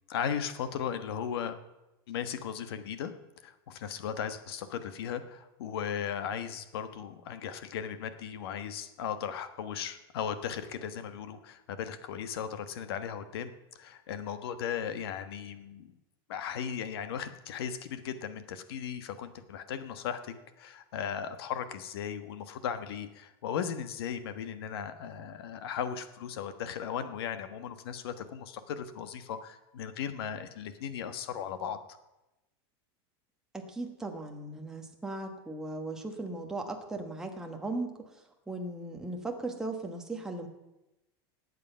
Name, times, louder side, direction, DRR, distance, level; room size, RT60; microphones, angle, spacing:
voice 1, 0.1-1.5 2.1-3.1 3.4-15.9 16.3-31.8, left 8 dB, 80° left, 10 dB, 1.3 m, -37 dB
voice 2, 33.5-37.9 38.5-40.5, right 2 dB, 5° right, 2 dB, 1.3 m, -37 dB
19.0 x 8.3 x 5.6 m, 0.97 s
supercardioid pair, 170°, 13 cm